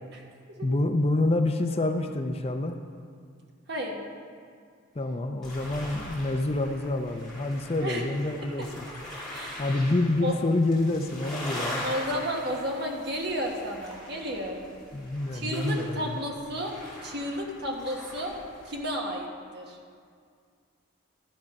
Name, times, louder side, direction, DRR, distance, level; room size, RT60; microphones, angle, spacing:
voice 1, 0.6-2.8 5.0-8.9 9.6-11.9 14.9-16.2, left 2 dB, 30° left, 6 dB, 0.5 m, -27 dB
voice 2, 3.7-4.0 7.8-8.0 8.4-8.7 9.3-9.7 10.2-10.3 11.8-14.6 15.3-16.8 17.0-18.3 18.6-19.8, equal, 55° right, 0 dB, 1.3 m, -32 dB
sound 1, 5.4-18.8, left 1 dB, 5° left, 2.8 m, -41 dB
12.0 x 7.3 x 5.3 m, 2.2 s
head